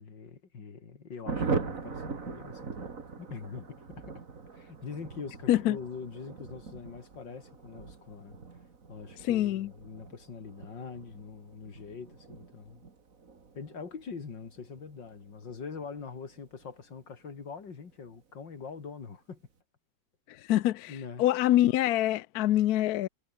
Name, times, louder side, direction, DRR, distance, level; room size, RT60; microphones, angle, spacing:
voice 1, 0.0-2.9 3.2-4.2 4.5-8.4 8.9-12.8 13.6-19.4 20.9-21.2, left 5 dB, 85° left, 3.4 m, -43 dB
Thunder, 1.3-17.4 17.7-17.8 18.0-18.2 18.4-18.9, right 4 dB, 45° right, 2.7 m, -41 dB
voice 2, 9.2-9.7 20.3-23.1, left 14 dB, 65° left, 1.0 m, -25 dB
omnidirectional pair, 1.9 m